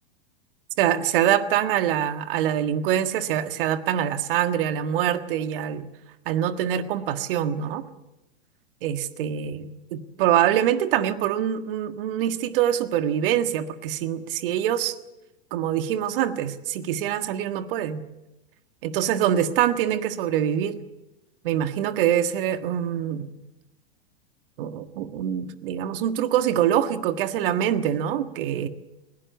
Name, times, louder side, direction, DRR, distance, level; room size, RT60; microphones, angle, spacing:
voice 1, 0.8-5.9 6.3-7.8 8.8-15.0 15.5-18.0 18.8-20.8 21.4-23.3 24.6-28.7, right 10 dB, 55° right, 10 dB, 1.6 m, -24 dB
20.5 x 17.0 x 8.3 m, 0.96 s
hypercardioid pair, 105°, 32 cm